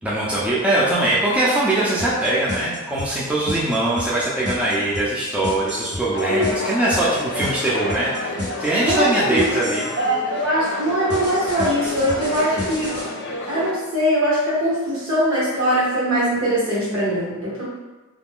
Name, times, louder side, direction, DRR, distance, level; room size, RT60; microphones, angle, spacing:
voice 1, 0.0-9.9, right 1 dB, 5° right, -7 dB, 0.4 m, -21 dB
sound 1, 2.0-10.0 11.1-13.0, left 1 dB, 85° right, 0.9 m, -31 dB
sound 2, 6.1-13.7, left 2 dB, 55° left, 0.4 m, -30 dB
voice 2, 8.8-9.4 10.0-12.9 13.5-17.7, equal, 65° right, -7 dB, 1.2 m, -21 dB
2.4 x 2.2 x 3.5 m, 1.2 s
head